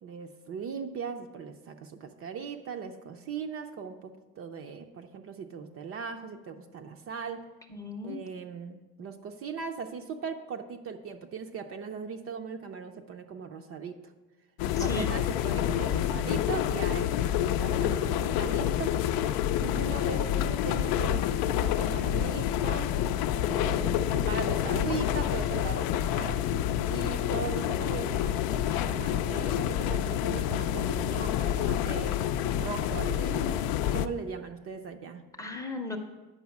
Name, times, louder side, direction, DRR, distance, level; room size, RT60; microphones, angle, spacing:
voice 1, 0.0-7.4 8.0-14.0 14.8-18.9 19.6-22.9 23.4-32.2 32.5-33.5 33.9-35.2, right 6 dB, 35° right, 5 dB, 0.5 m, -39 dB
voice 2, 7.7-8.2 14.8-15.1 33.2-33.7 35.4-36.0, left 3 dB, 10° left, 3 dB, 0.7 m, -36 dB
sound 1, 14.6-34.1, left 10 dB, 65° left, 0.5 m, -28 dB
9.4 x 5.5 x 7.1 m, 1.1 s
cardioid pair, 170°, 38 cm